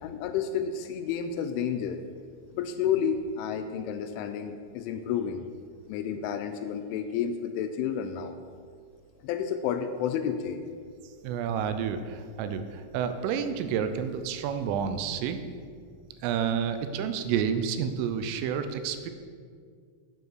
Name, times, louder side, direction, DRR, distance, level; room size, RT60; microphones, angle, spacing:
voice 1, 0.0-2.0 2.5-5.4 5.9-8.3 9.2-10.6, left 8 dB, 85° left, 7 dB, 2.9 m, -30 dB
voice 2, 11.2-15.4 16.2-19.1, right 7 dB, 85° right, 9 dB, 3.2 m, -30 dB
9.5 x 8.4 x 6.4 m, 2.1 s
omnidirectional pair, 5.8 m